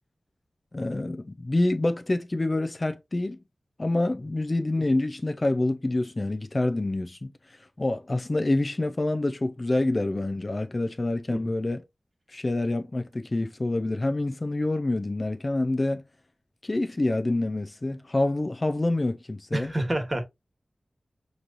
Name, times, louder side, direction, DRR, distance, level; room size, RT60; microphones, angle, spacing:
voice 1, 0.7-3.4 3.8-11.8 12.3-16.0 16.6-19.7, left 2 dB, 40° left, 0.4 m, -27 dB
voice 2, 19.5-20.2, right 1 dB, 30° right, 1.3 m, -27 dB
5.1 x 3.1 x 2.5 m
wide cardioid pair, 65°, 0 cm